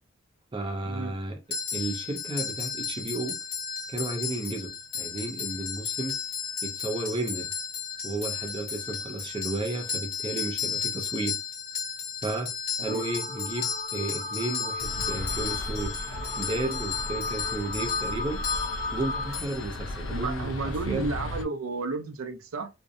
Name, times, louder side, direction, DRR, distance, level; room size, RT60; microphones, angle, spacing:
voice 1, 0.5-1.4 1.7-3.4 3.9-6.2 6.6-7.5 8.0-11.4 12.2-12.5 12.8-16.1 16.4-18.4 18.9-21.1, right 2 dB, 25° right, 0.4 m, -33 dB
sound 1, 1.5-20.3, left 7 dB, 45° left, 0.9 m, -34 dB
sound 2, 12.9-19.4, left 3 dB, 80° left, 0.7 m, -35 dB
sound 3, 14.8-21.4, left 1 dB, 65° left, 0.4 m, -36 dB
voice 2, 20.1-22.7, right 3 dB, 85° right, 0.5 m, -32 dB
2.6 x 2.0 x 2.5 m
head